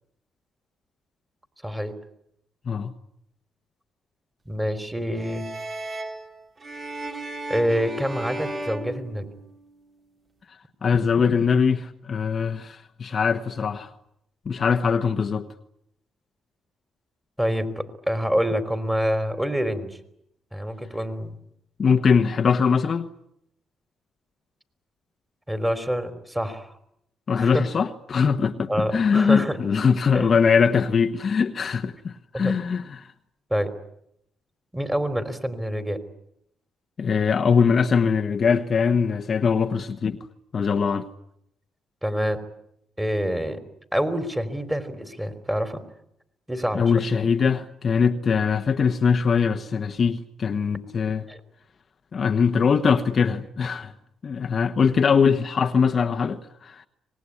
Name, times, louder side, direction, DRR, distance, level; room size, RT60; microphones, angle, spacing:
voice 1, 1.6-1.9 4.5-5.5 7.5-9.3 17.4-20.0 20.5-21.4 25.5-26.8 27.4-27.6 28.7-29.6 30.1-30.4 32.3-32.5 33.5-33.7 34.7-36.0 42.0-42.4 43.0-43.6 43.9-45.8 46.5-46.8 51.3-51.4, equal, 10° right, 3.5 m, -26 dB
sound 1, 5.2-9.8, right 2 dB, 40° right, 3.8 m, -35 dB
voice 2, 10.8-13.9 14.4-15.5 21.8-23.1 27.3-33.1 37.0-40.2 40.5-41.1 46.7-51.2 52.1-53.9 54.2-56.9, left 6 dB, 45° left, 1.2 m, -22 dB
25.5 x 20.0 x 9.8 m
cardioid pair, 90°, 0 cm